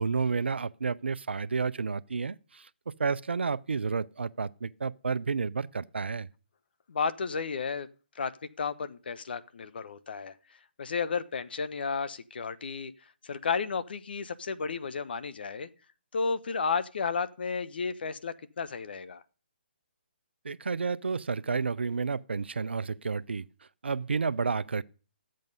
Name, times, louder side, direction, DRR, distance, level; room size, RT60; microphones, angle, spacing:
voice 1, 0.0-2.7 3.0-6.3 20.4-23.4 23.8-24.8, right 5 dB, 85° right, 0.5 m, -31 dB
voice 2, 6.9-7.9 8.1-8.3 8.6-10.3 10.8-12.9 13.2-15.7 16.1-19.2, left 5 dB, 65° left, 0.9 m, -32 dB
12.5 x 7.7 x 5.4 m
hypercardioid pair, 145°, 6 cm